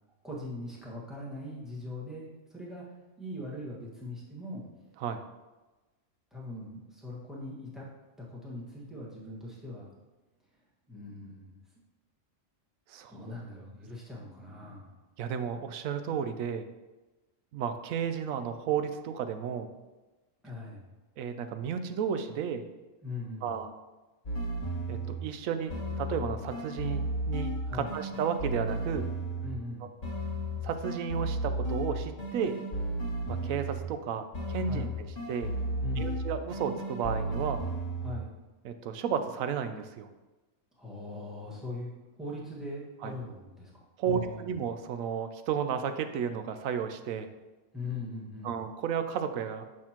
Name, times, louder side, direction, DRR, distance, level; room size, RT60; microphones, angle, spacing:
voice 1, 0.2-2.8 3.2-4.7 6.3-7.8 8.2-9.9 10.9-11.6 13.1-14.9 20.4-20.9 23.0-23.5 27.6-27.9 29.4-29.9 34.6-35.0 35.8-36.2 38.0-38.3 40.8-44.5 47.7-48.5, left 2 dB, ahead, -6 dB, 1.5 m, -41 dB
voice 2, 12.9-13.3 15.2-16.7 17.5-19.7 21.2-22.7 23.4-23.7 24.9-29.0 30.6-32.5 33.3-34.9 35.3-35.5 36.0-37.6 38.6-40.1 43.0-43.1 44.0-47.3 48.4-49.7, right 7 dB, 85° right, 9 dB, 1.0 m, -33 dB
sound 1, 24.3-25.3 25.7-29.7 30.0-34.0 34.3-38.3, right 1 dB, 65° left, 1.8 m, -34 dB
6.4 x 6.1 x 2.9 m, 1.2 s
omnidirectional pair, 1.4 m